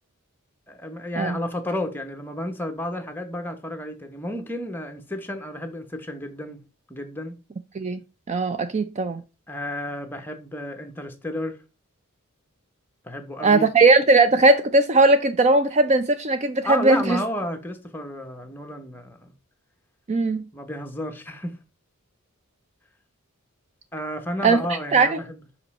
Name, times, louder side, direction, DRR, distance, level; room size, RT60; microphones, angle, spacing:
voice 1, 0.7-6.6 6.9-7.3 9.5-11.6 13.0-13.7 16.6-19.3 20.5-21.6 23.9-25.4, left 1 dB, 10° left, 0.9 m, -32 dB
voice 2, 8.3-9.2 13.4-17.2 20.1-20.5 24.4-24.6 24.9-25.2, right 3 dB, 30° right, 0.4 m, -18 dB
5.4 x 5.3 x 4.1 m
head